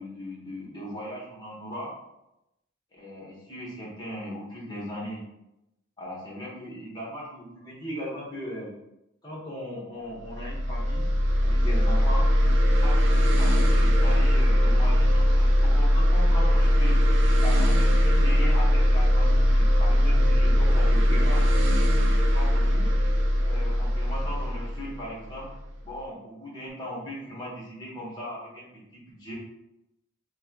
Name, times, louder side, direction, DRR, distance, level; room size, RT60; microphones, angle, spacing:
voice 1, 0.0-1.9 3.0-5.2 6.0-8.7 9.2-11.1 11.4-12.3 12.6-17.0 17.4-21.5 22.1-22.9 23.4-25.5 25.8-28.7 28.9-29.3, equal, 20° left, -6 dB, 1.3 m, -38 dB
sound 1, 10.2-25.7, equal, 70° right, 0.7 m, -20 dB
5.8 x 2.4 x 2.9 m, 0.87 s
head